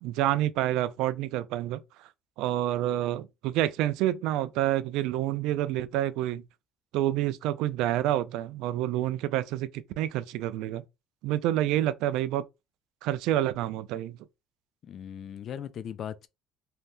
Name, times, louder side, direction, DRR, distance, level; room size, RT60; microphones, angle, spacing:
voice 1, 0.0-2.1 2.4-6.4 6.9-10.8 11.2-12.4 13.0-14.2, right 13 dB, 70° right, 0.3 m, -28 dB
voice 2, 14.8-16.3, left 9 dB, 45° left, 0.3 m, -38 dB
2.7 x 2.2 x 3.3 m
cardioid pair, 135°, 0 cm